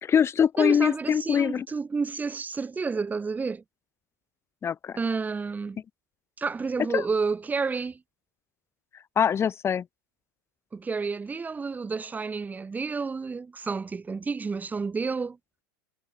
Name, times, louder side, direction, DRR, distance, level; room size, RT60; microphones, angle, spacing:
voice 1, 0.0-1.7 4.6-5.0 6.9-7.0 9.2-9.8, left 8 dB, 25° left, 2.1 m, -23 dB
voice 2, 0.6-3.6 5.0-5.8 6.4-8.0 10.7-15.4, right 4 dB, 15° right, 3.5 m, -30 dB
hypercardioid pair, 90°, 10 cm